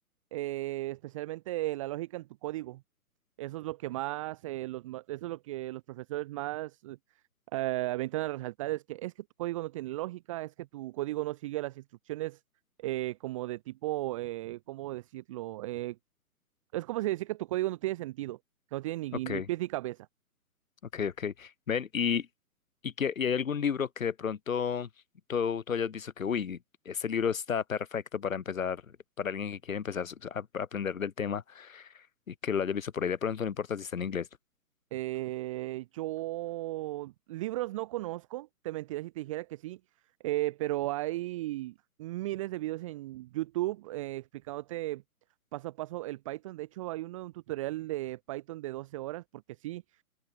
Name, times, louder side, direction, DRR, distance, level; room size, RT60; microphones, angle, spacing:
voice 1, 0.3-2.8 3.4-7.0 7.5-12.4 12.8-16.0 16.7-18.4 18.7-20.1 34.9-39.8 40.2-45.0 45.5-49.8, right 17 dB, 20° right, 0.9 m, -35 dB
voice 2, 20.9-22.3 22.8-24.9 25.3-26.6 26.9-28.8 29.2-31.9 32.3-34.3, left 7 dB, 60° left, 7.1 m, -32 dB
open air
figure-of-eight pair, 135°, 46 cm